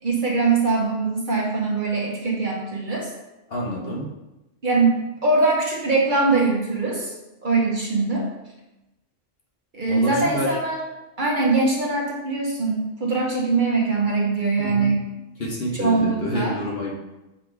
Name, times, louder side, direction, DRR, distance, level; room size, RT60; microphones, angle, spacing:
voice 1, 0.0-3.1 4.6-7.1 7.4-8.3 9.7-10.8 11.2-15.1 15.8-16.6, right 3 dB, 45° right, -2 dB, 1.0 m, -22 dB
voice 2, 3.5-4.1 9.9-10.6 14.6-14.9 15.4-16.9, equal, 50° left, -2 dB, 1.2 m, -28 dB
6.1 x 3.5 x 4.5 m, 0.97 s
omnidirectional pair, 1.3 m